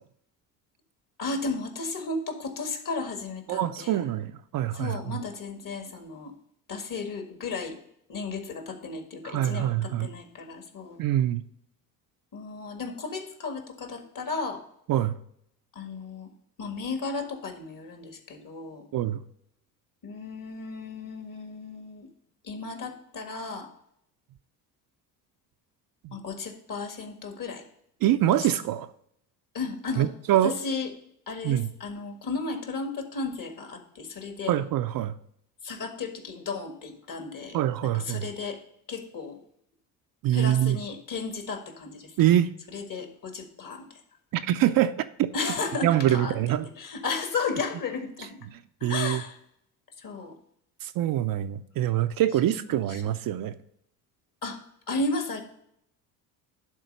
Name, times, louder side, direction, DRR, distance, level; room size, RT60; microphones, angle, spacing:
voice 1, 1.2-4.1 4.7-6.3 6.7-7.8 8.1-11.0 12.3-14.6 15.8-16.3 16.6-18.8 20.0-22.1 22.4-23.7 26.1-27.7 28.3-28.5 29.5-30.1 30.4-30.9 31.3-34.5 35.6-37.6 37.9-38.6 38.9-39.4 40.3-42.1 42.7-44.0 45.3-46.4 46.8-48.4 48.8-49.4 50.0-50.4 52.5-53.0 54.4-54.6 54.9-55.4, left 4 dB, 45° left, 6 dB, 1.8 m, -34 dB
voice 2, 3.5-5.2 9.2-10.1 11.0-11.4 14.9-15.2 18.9-19.2 26.0-26.1 28.0-28.9 30.0-30.5 31.4-31.7 34.5-35.1 37.5-38.3 40.2-40.8 42.2-42.5 44.3-44.9 45.2-45.3 45.8-46.6 48.8-49.2 50.8-53.5, right 12 dB, 50° right, 9 dB, 0.6 m, -24 dB
11.0 x 3.8 x 5.2 m, 0.72 s
hypercardioid pair, 65°, 45 cm